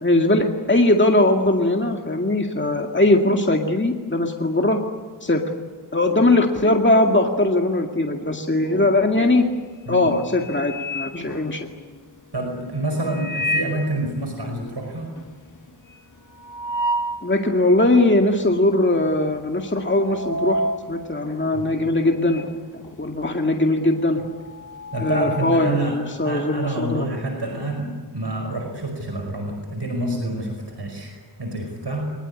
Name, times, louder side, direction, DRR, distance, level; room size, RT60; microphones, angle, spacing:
voice 1, 0.0-4.8 5.2-5.4 5.9-9.4 9.9-11.7 17.2-20.6 20.9-24.2 25.0-27.1, left 2 dB, 30° left, 2 dB, 2.1 m, -20 dB
sound 1, 9.3-9.6 10.0-12.0 13.0-14.0 14.4-14.5 14.7-14.8 15.2-17.3 17.8-17.9 18.7-19.0 19.3-22.6 22.8-25.8, equal, 50° left, 2.3 m, -30 dB
voice 2, 12.3-15.1 21.5-21.7 24.9-26.0 26.2-32.1, right 2 dB, 75° right, 3 dB, 5.2 m, -27 dB
23.0 x 21.0 x 9.8 m, 1.5 s
wide cardioid pair, 55°, 41 cm